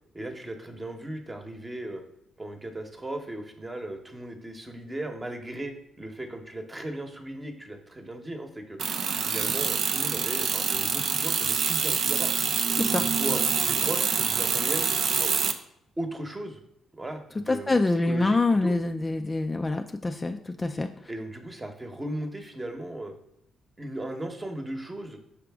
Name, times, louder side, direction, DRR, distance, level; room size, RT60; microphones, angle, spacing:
voice 1, 0.1-2.0 2.4-8.8 9.2-12.3 12.9-15.3 16.0-16.6 17.0-18.7 21.1-23.1 23.8-25.2, right 1 dB, 20° right, 5 dB, 1.0 m, -37 dB
sound 1, 8.8-15.5, right 6 dB, 60° right, 0.5 m, -26 dB
voice 2, 17.5-21.1, left 2 dB, 20° left, 5 dB, 0.4 m, -26 dB
5.8 x 4.9 x 3.5 m, 0.76 s
cardioid pair, 90°, 0 cm